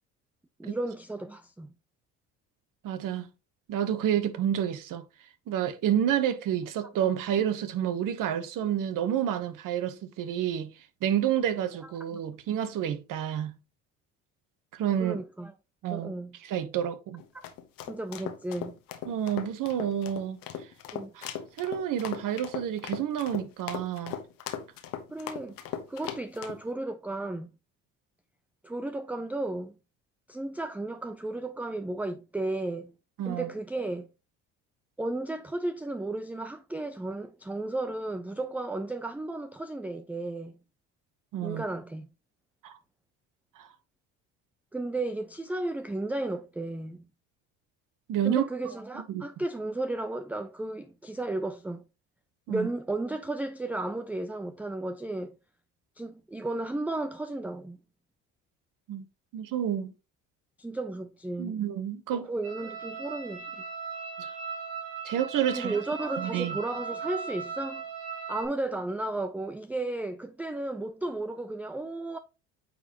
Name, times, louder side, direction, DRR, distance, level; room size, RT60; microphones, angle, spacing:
voice 1, 0.6-1.7 12.1-12.2 15.0-15.5 15.9-16.4 17.3-17.4 17.9-18.8 20.9-21.1 25.1-25.6 25.9-27.5 28.6-29.8 30.3-32.9 33.3-34.1 35.0-40.5 41.4-42.1 44.7-47.0 48.2-51.8 52.5-55.4 56.0-57.8 60.6-61.6 62.1-63.6 65.5-67.8 68.3-72.2, right 2 dB, 5° right, 0.4 m, -34 dB
voice 2, 2.8-3.3 3.7-5.0 5.5-10.7 11.0-13.5 14.7-15.2 15.8-16.1 16.4-17.2 19.0-20.4 21.1-24.2 33.2-33.5 41.3-41.6 42.6-42.8 43.6-43.7 48.1-48.4 49.1-49.3 52.5-52.7 58.9-59.0 59.3-59.9 61.4-62.3 64.2-64.3 65.0-65.7 66.2-66.6, right 10 dB, 60° right, 1.2 m, -29 dB
sound 1, 17.2-26.6, left 10 dB, 65° left, 1.2 m, -38 dB
sound 2, 62.4-68.5, right 5 dB, 90° right, 2.2 m, -38 dB
9.0 x 4.1 x 3.0 m
supercardioid pair, 70°, 36 cm